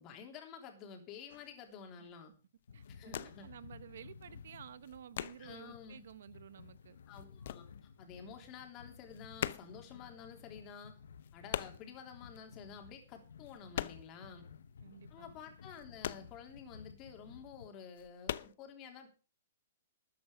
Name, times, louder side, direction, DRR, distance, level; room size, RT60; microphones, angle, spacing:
voice 1, 0.0-2.3 2.9-3.5 5.4-6.0 7.1-10.9 11.3-14.5 15.1-19.1, left 7 dB, 30° left, 3.4 m, -51 dB
sound 1, 1.3-1.6 2.1-2.3 2.6-3.6 3.8-5.7 6.1-8.3 8.6-14.3 14.6-14.7 15.1-17.0 17.4-17.5 17.9-18.5, left 11 dB, 60° left, 0.7 m, -42 dB
sound 2, 2.7-17.7, left 6 dB, 85° left, 1.2 m, -56 dB
voice 2, 2.7-7.0 14.8-15.4, right 9 dB, 70° right, 0.9 m, -53 dB
13.5 x 9.4 x 5.0 m
hypercardioid pair, 150°, 0 cm